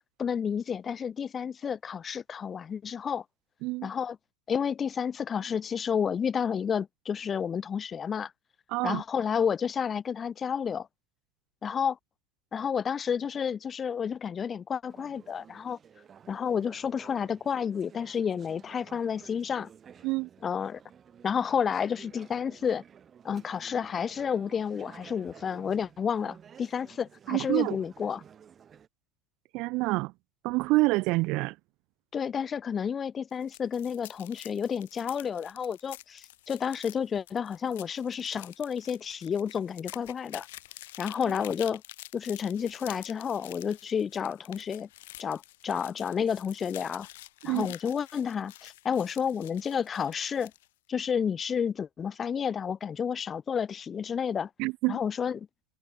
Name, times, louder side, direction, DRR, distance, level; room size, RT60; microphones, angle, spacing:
voice 1, 0.2-3.2 3.8-4.2 4.5-8.3 8.8-10.9 11.6-12.0 12.5-15.8 16.3-19.7 20.4-20.8 21.2-22.8 23.2-28.2 32.1-40.5 41.0-41.8 42.1-44.9 45.2-47.1 47.4-50.5 50.9-54.5 54.9-55.5, left 7 dB, 25° left, 1.3 m, -30 dB
voice 2, 8.7-9.0 20.0-20.3 27.3-27.8 29.5-30.1 30.4-31.5 47.4-47.7 54.6-55.0, right 23 dB, 55° right, 0.4 m, -27 dB
Conversation / Chatter, 14.9-28.9, right 8 dB, 30° right, 7.5 m, -53 dB
sound 1, 33.3-50.7, left 17 dB, 75° left, 1.5 m, -48 dB
supercardioid pair, 120°, 0 cm